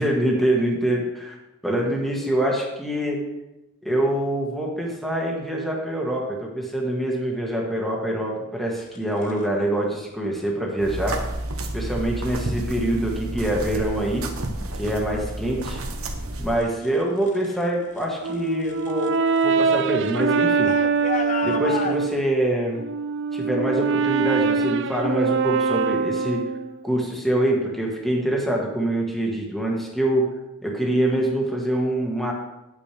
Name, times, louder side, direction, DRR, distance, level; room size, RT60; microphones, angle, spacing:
voice 1, 0.0-1.3 1.6-3.2 3.8-11.2 11.7-14.2 14.8-15.8 16.4-19.1 19.4-20.7 21.4-22.8 23.3-26.4 26.8-30.3 30.6-32.3, right 1 dB, ahead, -2 dB, 1.6 m, -25 dB
sound 1, 8.8-9.5 10.6-10.9 11.5-12.0 12.5-13.0 13.4-17.7 17.9-22.0, left 5 dB, 35° left, 0.5 m, -36 dB
sound 2, 10.8-16.6, right 1 dB, 75° right, 1.2 m, -30 dB
Brass instrument, 18.2-22.2 22.7-26.8, right 5 dB, 55° right, 0.5 m, -23 dB
9.7 x 8.7 x 3.4 m, 0.96 s
head